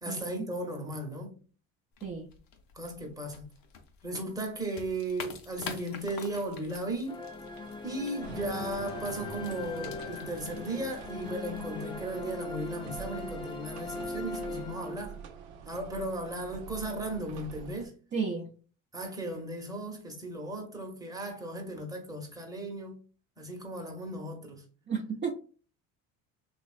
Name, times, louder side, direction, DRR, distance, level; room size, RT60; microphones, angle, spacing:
voice 1, 0.0-1.3 2.7-3.5 4.0-7.3 7.8-15.2 15.7-17.9 18.9-22.9 23.4-24.6, right 1 dB, 10° right, 1.1 m, -36 dB
sound 1, 1.9-12.2, left 6 dB, 60° left, 0.8 m, -48 dB
sound 2, 7.1-15.4, left 2 dB, 15° left, 0.4 m, -40 dB
sound 3, 8.2-17.9, right 5 dB, 70° right, 0.7 m, -46 dB
voice 2, 18.1-18.5 24.9-25.3, right 5 dB, 30° right, 0.7 m, -32 dB
3.0 x 2.5 x 2.4 m
supercardioid pair, 85°, 40 cm